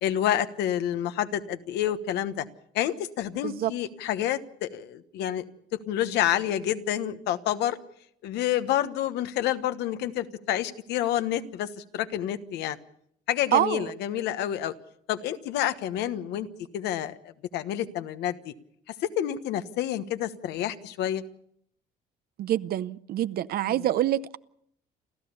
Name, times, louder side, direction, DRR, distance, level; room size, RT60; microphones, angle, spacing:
voice 1, 0.0-2.4 2.7-5.4 5.7-7.8 8.2-12.8 13.3-14.7 15.1-16.5 16.7-18.5 19.0-21.2 23.6-23.9, left 11 dB, 85° left, 1.2 m, -28 dB
voice 2, 13.5-13.9 22.4-24.4, right 12 dB, 65° right, 0.7 m, -26 dB
29.0 x 13.0 x 6.9 m
cardioid pair, 110°, 17 cm